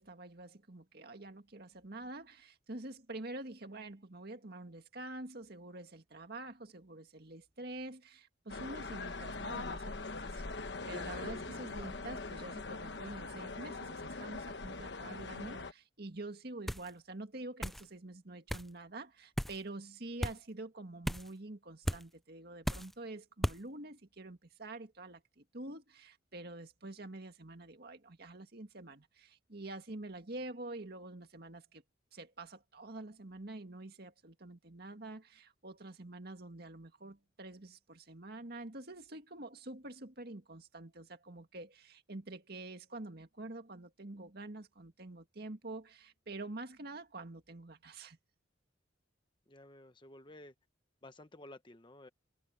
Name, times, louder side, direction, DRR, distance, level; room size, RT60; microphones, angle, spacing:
voice 1, 0.0-31.8 32.1-48.2, right 2 dB, 55° right, 2.1 m, -47 dB
sound 1, 8.5-15.7, left 3 dB, 60° left, 1.2 m, -42 dB
sound 2, 16.7-16.9 17.6-17.8 18.5-18.7 19.4-19.6 20.2-20.4 21.0-21.3 21.8-22.0 22.6-22.9 23.4-23.6, equal, ahead, 0.3 m, -35 dB
voice 2, 49.5-50.5 51.0-52.1, left 1 dB, 25° left, 1.2 m, -54 dB
head